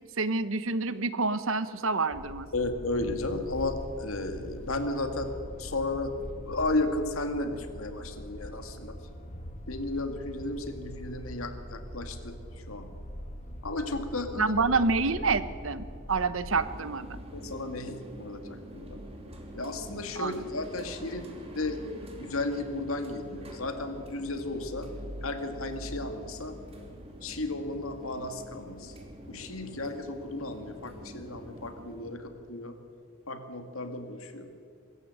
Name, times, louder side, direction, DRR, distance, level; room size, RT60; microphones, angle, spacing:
voice 1, 0.2-2.5 14.4-17.1 20.2-20.4, right 4 dB, 75° right, 14 dB, 1.0 m, -28 dB
sound 1, 2.1-16.8, equal, 35° left, 2.3 m, -42 dB
voice 2, 2.5-5.3 5.6-6.1 6.5-8.9 9.7-12.3 12.7-12.9 13.6-14.5 17.3-18.4 18.7-19.0 19.5-21.3 21.5-21.8 22.2-24.9 25.2-26.5 27.2-28.9 29.3-32.7 33.3-34.5, left 2 dB, 85° left, 7 dB, 2.2 m, -34 dB
sound 2, 16.6-32.1, equal, 30° right, 2.8 m, -45 dB
23.5 x 13.5 x 8.9 m, 2.2 s
head